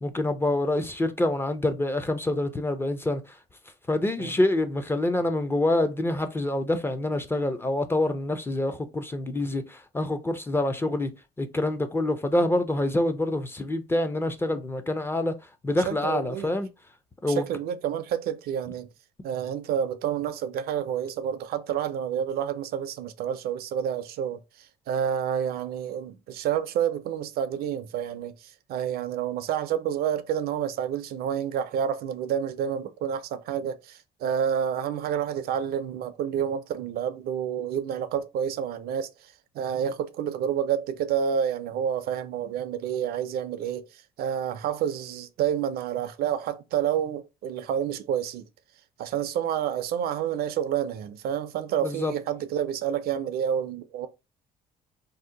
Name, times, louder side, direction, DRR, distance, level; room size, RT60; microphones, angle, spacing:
voice 1, 0.0-3.2 3.9-11.1 11.4-15.3 15.6-16.7 17.2-17.4 51.8-52.1, left 1 dB, 15° left, 0.4 m, -26 dB
voice 2, 15.8-16.5 17.3-18.9 19.2-48.5 49.0-54.1, right 9 dB, 65° right, 0.4 m, -29 dB
2.7 x 2.1 x 3.7 m
cardioid pair, 110°, 17 cm